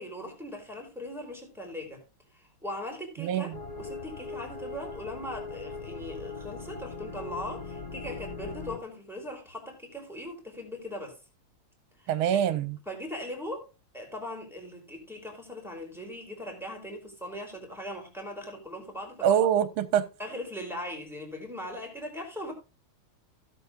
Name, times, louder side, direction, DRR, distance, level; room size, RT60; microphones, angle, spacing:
voice 1, 0.0-2.0 2.3-3.5 3.8-11.2 12.0-12.4 12.9-13.7 13.9-19.4 20.2-22.5, left 1 dB, ahead, 2.9 m, -39 dB
voice 2, 3.2-3.5 12.1-12.8 19.2-20.1, right 9 dB, 80° right, 1.5 m, -24 dB
sound 1, 3.5-8.8, left 4 dB, 40° left, 0.5 m, -40 dB
16.0 x 7.2 x 2.4 m
omnidirectional pair, 2.3 m